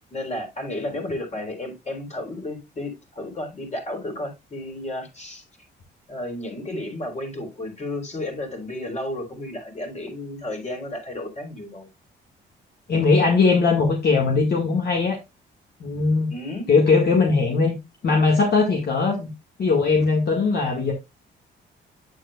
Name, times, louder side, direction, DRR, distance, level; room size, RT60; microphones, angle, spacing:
voice 1, 0.1-5.4 6.1-11.9 16.3-16.7, left 1 dB, 35° left, 3.9 m, -32 dB
voice 2, 12.9-15.2 15.8-16.3 16.7-17.8 18.0-19.3 19.6-20.9, left 4 dB, 55° left, 1.8 m, -19 dB
8.7 x 8.3 x 2.3 m
cardioid pair, 90°, 20 cm